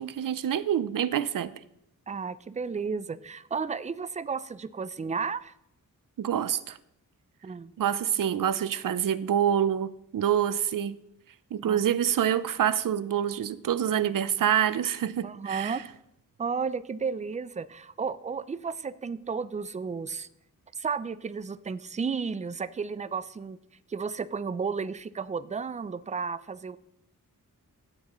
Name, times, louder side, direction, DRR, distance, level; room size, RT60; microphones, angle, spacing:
voice 1, 0.0-1.5 6.2-6.8 7.8-11.0 11.5-15.8, right 9 dB, 70° right, 16 dB, 0.6 m, -26 dB
voice 2, 2.1-5.5 7.4-7.7 11.6-11.9 15.2-15.8 16.4-20.3 20.8-23.6 23.9-26.8, right 5 dB, 20° right, 15 dB, 0.3 m, -33 dB
13.0 x 8.7 x 3.0 m, 0.80 s
wide cardioid pair, 145°, 34 cm